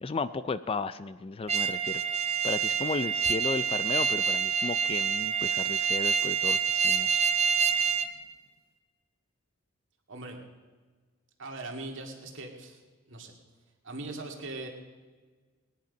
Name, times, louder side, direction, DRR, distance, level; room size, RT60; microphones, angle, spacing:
voice 1, 0.0-2.0 2.4-7.3, left 4 dB, 25° left, 14 dB, 0.4 m, -34 dB
sound 1, 1.5-8.1, right 7 dB, 30° right, 0.7 m, -27 dB
voice 2, 11.4-12.8 13.1-13.3 13.8-14.7, right 2 dB, 60° right, 2 dB, 2.3 m, -40 dB
19.5 x 10.5 x 5.3 m, 1.4 s
head